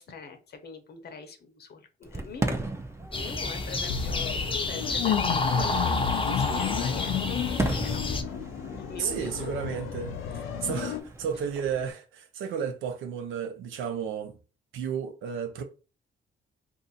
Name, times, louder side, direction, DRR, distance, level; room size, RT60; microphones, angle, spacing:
voice 1, 0.0-2.6 3.1-5.2 5.6-8.0 8.9-9.5 10.3-10.5 11.3-11.4, left 5 dB, 55° left, 0.9 m, -43 dB
Fireworks, 2.0-11.9, right 2 dB, 15° right, 0.6 m, -37 dB
sound 1, 3.1-8.2, left 2 dB, 25° left, 0.6 m, -30 dB
sound 2, 3.9-11.0, left 9 dB, 85° left, 0.5 m, -32 dB
voice 2, 9.0-10.2 10.6-14.4 14.7-15.6, right 7 dB, 85° right, 0.7 m, -32 dB
2.7 x 2.5 x 3.9 m
cardioid pair, 90°, 20 cm